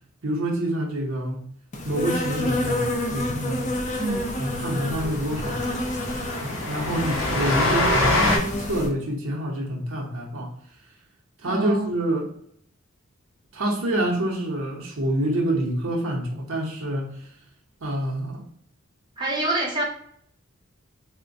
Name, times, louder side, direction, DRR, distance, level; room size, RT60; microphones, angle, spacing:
voice 1, 0.2-1.5 1.8-3.7 4.4-5.6 6.4-10.5 11.4-12.3 13.5-17.3 17.8-18.4, right 1 dB, 90° right, -1 dB, 0.8 m, -27 dB
Insect, 1.7-8.9, left 1 dB, 35° left, 0.4 m, -29 dB
Train, 3.8-3.9 4.2-4.3 4.6-4.7 5.0-8.4, left 1 dB, 80° left, 0.7 m, -25 dB
voice 2, 4.0-4.3 11.4-11.9 19.2-19.8, right 2 dB, 20° right, -3 dB, 0.7 m, -26 dB
3.7 x 2.1 x 2.6 m, 0.65 s
head